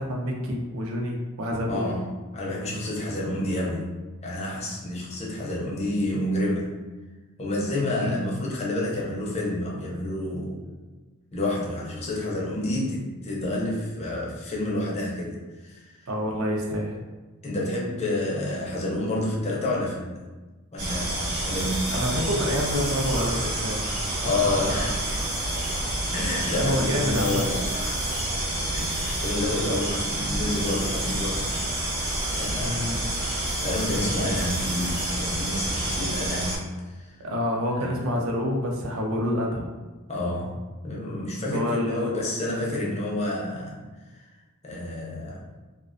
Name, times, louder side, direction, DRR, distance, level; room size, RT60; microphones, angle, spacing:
voice 1, 0.0-1.9 8.0-8.3 16.1-17.0 21.9-23.8 24.2-25.0 26.5-27.4 32.6-33.0 37.2-39.7 41.5-42.1, equal, 65° right, 0 dB, 0.5 m, -28 dB
voice 2, 1.7-3.9 4.2-6.7 7.4-10.6 11.3-16.1 17.4-20.2 20.7-21.9 24.2-25.0 26.1-28.0 28.7-31.5 32.2-32.9 33.2-37.2 37.7-38.0 40.1-40.6 40.8-43.8 44.2-44.3 44.6-45.4, left 1 dB, 30° left, -3 dB, 0.5 m, -29 dB
sound 1, 20.8-36.6, right 1 dB, 50° right, 0.8 m, -28 dB
2.3 x 2.2 x 2.4 m, 1.3 s
head